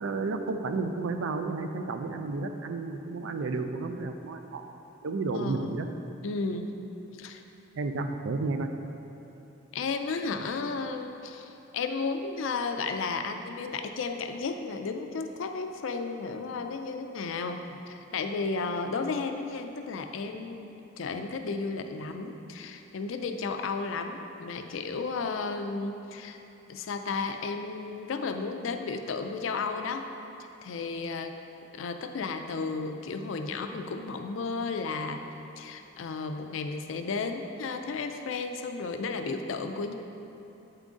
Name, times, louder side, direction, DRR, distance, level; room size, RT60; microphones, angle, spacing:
voice 1, 0.0-4.6 5.0-5.9 7.8-8.7, right 3 dB, 70° right, 7 dB, 0.4 m, -32 dB
voice 2, 5.3-5.7 6.2-6.7 7.2-7.4 9.7-26.4 26.7-30.1 30.6-31.4 31.7-35.2 35.6-39.9, left 4 dB, 70° left, 6 dB, 0.4 m, -33 dB
8.1 x 3.8 x 3.6 m, 2.9 s
head